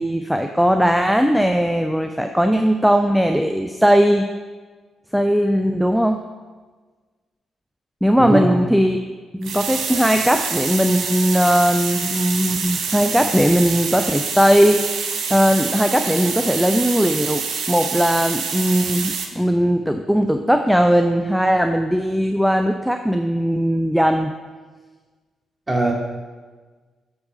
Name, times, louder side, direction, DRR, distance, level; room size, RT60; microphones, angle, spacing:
voice 1, 0.0-4.3 5.1-6.2 8.0-9.0 9.4-24.3, equal, ahead, 6 dB, 0.5 m, -18 dB
voice 2, 8.2-8.6 25.7-25.9, right 1 dB, 20° right, -2 dB, 2.3 m, -19 dB
sound 1, 9.4-19.3, right 5 dB, 60° right, 0.8 m, -26 dB
8.3 x 4.5 x 5.6 m, 1.4 s
figure-of-eight pair, 40°, 0 cm